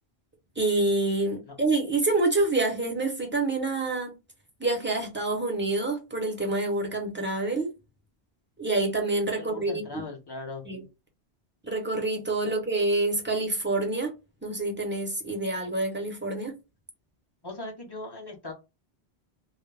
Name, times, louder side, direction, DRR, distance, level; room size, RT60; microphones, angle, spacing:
voice 1, 0.6-4.1 4.6-7.7 8.6-10.0 10.7-10.8 11.6-14.1 14.4-16.5, right 2 dB, 15° right, 0.6 m, -27 dB
voice 2, 9.4-10.6 17.4-18.5, left 2 dB, 30° left, 0.6 m, -39 dB
2.3 x 2.1 x 3.2 m
omnidirectional pair, 1.1 m